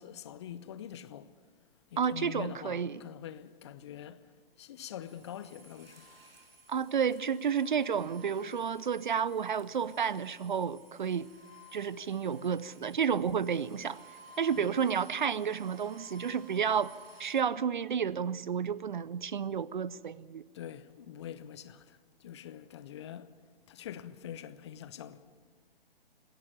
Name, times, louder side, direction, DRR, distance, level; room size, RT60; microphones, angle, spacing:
voice 1, 0.0-1.3 1.9-4.3 4.6-6.1 14.5-14.7 20.5-23.3 23.7-25.2, left 10 dB, 30° left, 0.8 m, -45 dB
voice 2, 2.0-3.0 6.7-11.3 11.7-14.0 14.4-16.9 17.2-20.4, right 7 dB, 55° right, 0.7 m, -31 dB
sound 1, 5.0-17.4, right 1 dB, 75° right, 3.1 m, -56 dB
25.5 x 11.0 x 9.8 m
figure-of-eight pair, 130°, 29 cm